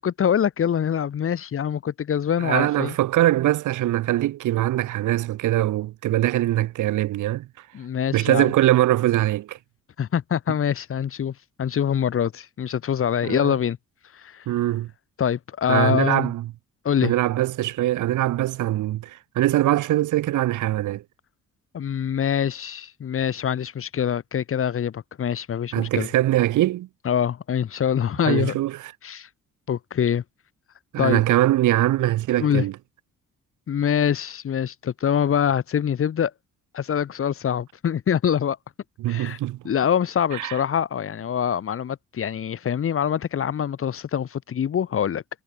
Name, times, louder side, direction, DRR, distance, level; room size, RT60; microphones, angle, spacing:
voice 1, 0.0-2.9 7.7-8.5 10.0-13.8 14.1-14.5 15.2-16.3 16.8-17.1 21.7-26.1 27.0-28.6 29.0-29.3 29.7-30.2 31.0-31.2 32.4-32.6 33.7-36.3 36.7-38.6 39.1-39.4 39.6-45.2, left 8 dB, 45° left, 1.2 m, -24 dB
voice 2, 2.4-7.5 8.1-9.6 13.2-13.6 14.5-14.9 15.7-16.4 17.0-21.0 25.7-26.9 28.3-28.8 30.9-32.7 39.0-39.6 40.3-40.6, right 15 dB, 85° right, 2.3 m, -22 dB
cardioid pair, 90°, 30 cm